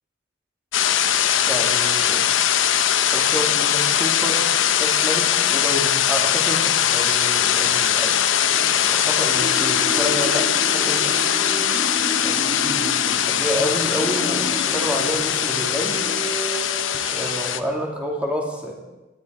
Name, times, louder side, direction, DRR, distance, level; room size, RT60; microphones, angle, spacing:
sound 1, 0.7-17.6, left 9 dB, 85° left, 0.8 m, -21 dB
voice 1, 1.5-2.2 3.1-11.1 12.2-16.0 17.1-18.7, equal, 5° right, -1 dB, 2.9 m, -29 dB
sound 2, 9.2-17.4, equal, 35° right, 2.9 m, -32 dB
19.0 x 13.0 x 4.8 m, 1.1 s
head